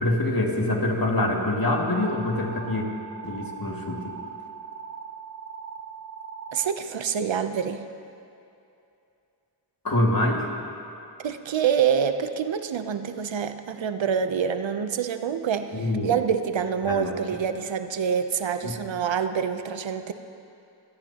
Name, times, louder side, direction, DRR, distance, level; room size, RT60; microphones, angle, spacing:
voice 1, 0.0-2.9 3.2-4.1 9.8-10.5 15.7-16.1 16.9-17.1 18.6-18.7, left 1 dB, 50° left, 0 dB, 2.3 m, -25 dB
sound 1, 1.9-6.7, right 6 dB, 30° right, 0.8 m, -40 dB
voice 2, 6.5-7.9 11.2-20.1, right 7 dB, 85° right, 9 dB, 0.8 m, -26 dB
24.0 x 15.5 x 2.9 m, 2.7 s
cardioid pair, 45°, 44 cm